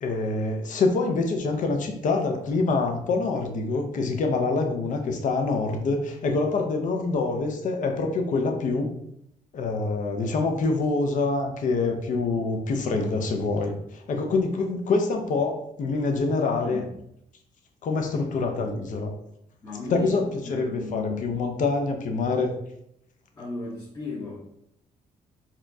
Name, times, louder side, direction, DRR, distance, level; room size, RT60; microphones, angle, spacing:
voice 1, 0.0-8.9 9.5-16.8 17.8-19.1 19.9-22.5, left 3 dB, 60° left, 3 dB, 0.6 m, -25 dB
voice 2, 19.6-20.2 20.4-21.3 23.3-24.6, left 3 dB, 25° left, -7 dB, 1.0 m, -35 dB
4.2 x 2.4 x 2.6 m, 0.75 s
cardioid pair, 95°, 15 cm